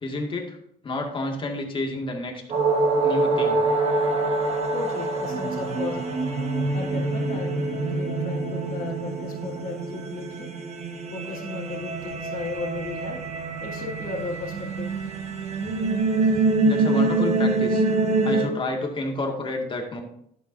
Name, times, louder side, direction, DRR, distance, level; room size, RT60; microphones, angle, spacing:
voice 1, 0.0-0.6 0.8-2.4 3.0-3.6 15.6-15.7 16.3-17.8 18.2-20.0, left 2 dB, 30° left, 2 dB, 2.0 m, -30 dB
sound 1, 2.5-18.5, right 3 dB, 40° right, 1.4 m, -25 dB
voice 2, 4.4-6.0 6.7-10.5 11.1-13.2 13.6-14.9, left 3 dB, 55° left, -8 dB, 3.2 m, -35 dB
11.5 x 8.3 x 2.6 m, 0.73 s
cardioid pair, 110°, 17 cm